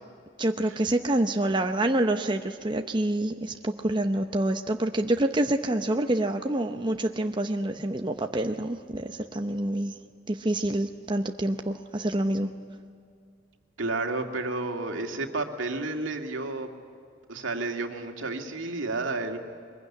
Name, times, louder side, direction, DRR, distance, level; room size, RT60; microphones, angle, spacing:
voice 1, 0.4-10.0 10.3-12.5, right 1 dB, 25° right, 5 dB, 0.7 m, -27 dB
voice 2, 13.8-16.7 17.3-19.4, right 3 dB, 75° right, 4 dB, 2.3 m, -31 dB
23.5 x 22.0 x 10.0 m, 2.3 s
head